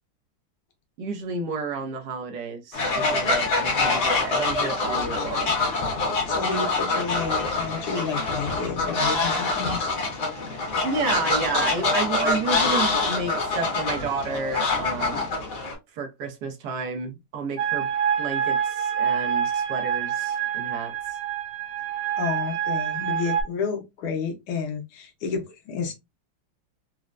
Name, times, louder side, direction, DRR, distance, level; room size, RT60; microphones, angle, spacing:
voice 1, 1.0-5.5 10.8-15.3 16.0-17.9 18.2-20.9, right 4 dB, 65° right, 1.1 m, -31 dB
Fowl, 2.7-15.7, left 3 dB, 55° left, 1.7 m, -25 dB
voice 2, 6.3-9.9 22.2-25.9, left 5 dB, 90° left, 1.7 m, -30 dB
sound 1, 17.6-23.4, right 8 dB, 90° right, 1.7 m, -26 dB
4.3 x 2.1 x 2.4 m
omnidirectional pair, 2.3 m